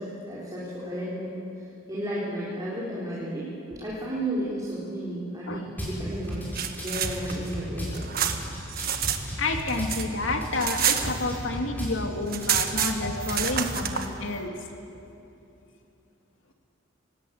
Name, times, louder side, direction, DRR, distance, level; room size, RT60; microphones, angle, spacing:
voice 1, 0.0-6.5 6.8-8.1, right 1 dB, 20° right, -7 dB, 3.9 m, -33 dB
Drum kit / Bass drum, 5.8-5.9 6.3-7.9 8.3-9.9 10.3-11.9 12.4-13.7, equal, 10° left, 6.4 m, -34 dB
sound 1, 6.3-9.2 9.5-11.7 11.9-12.0 12.2-14.1, right 9 dB, 45° right, 1.4 m, -28 dB
voice 2, 9.4-14.5, left 2 dB, 70° left, 4 dB, 2.5 m, -30 dB
27.5 x 17.5 x 8.6 m, 2.8 s
head